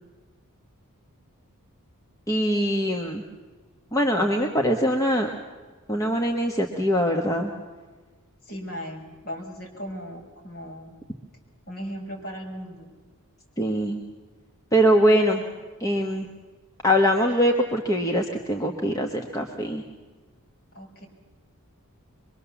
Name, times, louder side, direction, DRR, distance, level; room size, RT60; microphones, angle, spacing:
voice 1, 2.3-3.2 3.9-5.3 5.9-7.5 13.6-14.0 14.7-15.4 15.8-16.3 16.8-19.8, equal, 15° left, 1 dB, 1.4 m, -22 dB
voice 2, 8.4-11.0 11.7-12.9 20.7-21.1, equal, 45° left, -1 dB, 5.6 m, -37 dB
23.5 x 23.5 x 7.2 m, 1.4 s
head